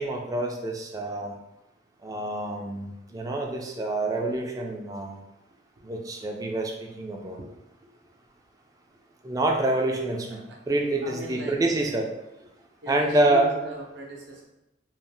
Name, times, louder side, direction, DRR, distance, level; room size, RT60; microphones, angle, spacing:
voice 1, 0.0-1.3 2.0-5.2 5.8-7.4 9.2-10.4 10.7-12.0 12.9-13.5, right 2 dB, 20° right, 1 dB, 0.3 m, -27 dB
voice 2, 11.0-12.0 12.8-14.4, right 1 dB, 70° right, -1 dB, 0.6 m, -39 dB
2.6 x 2.0 x 3.3 m, 0.90 s
head